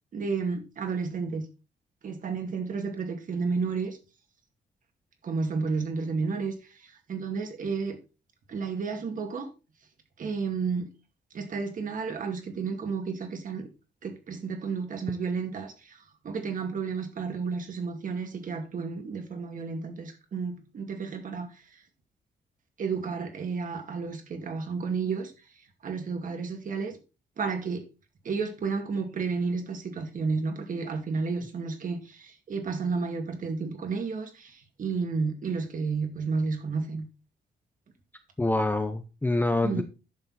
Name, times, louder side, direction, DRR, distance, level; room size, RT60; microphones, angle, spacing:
voice 1, 0.1-1.5 2.0-4.0 5.2-8.0 8.5-9.5 10.2-10.9 11.3-13.7 14.0-16.0 16.2-21.5 22.8-25.3 25.8-27.0 27.4-27.8 28.2-37.1 39.6-39.8, right 4 dB, 45° right, 2.3 m, -31 dB
voice 2, 38.4-39.8, left 2 dB, 10° left, 0.7 m, -26 dB
10.5 x 7.1 x 4.1 m
wide cardioid pair, 175°, 18 cm